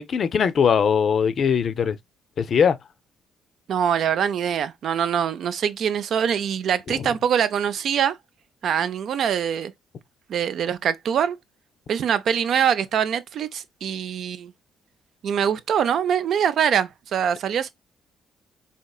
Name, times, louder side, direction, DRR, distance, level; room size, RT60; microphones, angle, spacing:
voice 1, 0.0-2.0 2.4-2.8 6.9-7.1, left 7 dB, 55° left, 0.4 m, -21 dB
voice 2, 3.7-8.2 8.6-9.7 10.3-11.4 11.9-14.5 15.2-17.7, right 8 dB, 65° right, 0.5 m, -23 dB
4.2 x 2.8 x 2.3 m
cardioid pair, 90°, 0 cm